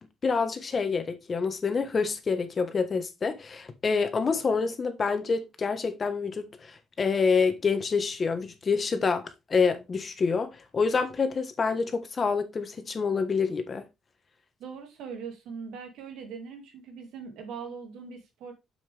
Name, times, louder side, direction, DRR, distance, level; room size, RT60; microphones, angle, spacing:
voice 1, 0.2-13.8, left 5 dB, 35° left, 1.3 m, -27 dB
voice 2, 14.6-18.5, right 6 dB, 85° right, 2.3 m, -41 dB
7.0 x 6.3 x 3.4 m
cardioid pair, 120°, 0 cm